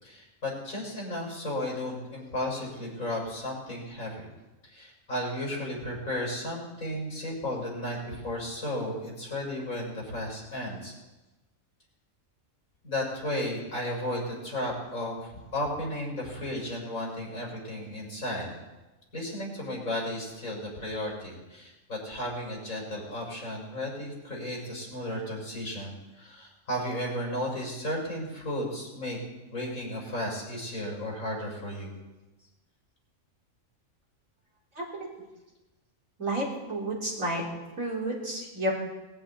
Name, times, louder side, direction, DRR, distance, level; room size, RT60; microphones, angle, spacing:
voice 1, 0.0-4.2 4.7-10.9 12.8-18.5 19.1-29.2 29.5-31.9, left 1 dB, 85° left, -3 dB, 6.1 m, -34 dB
voice 2, 34.8-35.1 36.2-37.4 37.8-38.7, right 1 dB, 85° right, -3 dB, 4.1 m, -31 dB
20.0 x 15.5 x 4.4 m, 1.1 s
omnidirectional pair, 1.4 m